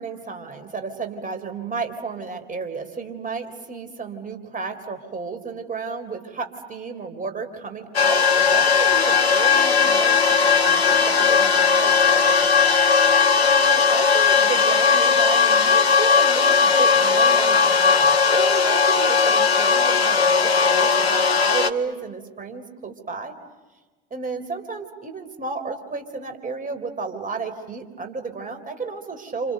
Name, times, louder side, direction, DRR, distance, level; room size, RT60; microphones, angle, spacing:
voice 1, 0.0-12.6 13.4-23.3 24.1-29.5, right 4 dB, 25° right, 7 dB, 3.9 m, -32 dB
sound 1, 7.9-21.7, left 5 dB, 90° left, 1.2 m, -18 dB
Bowed string instrument, 8.9-13.5, left 7 dB, 35° left, 3.3 m, -33 dB
29.5 x 29.0 x 6.8 m, 1.2 s
figure-of-eight pair, 65°, 30 cm